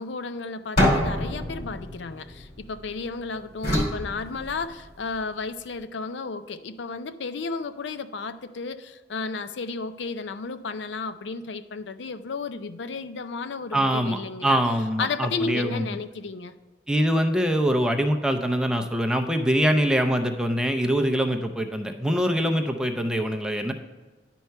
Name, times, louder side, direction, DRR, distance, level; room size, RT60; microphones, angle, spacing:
voice 1, 0.0-14.6 15.0-16.5, left 4 dB, 80° left, 12 dB, 0.5 m, -33 dB
sound 1, 0.8-3.0 3.6-5.0, equal, 55° left, 2.6 m, -26 dB
voice 2, 13.7-15.9 16.9-23.7, equal, 5° right, 4 dB, 0.5 m, -24 dB
10.5 x 4.6 x 5.5 m, 1.4 s
head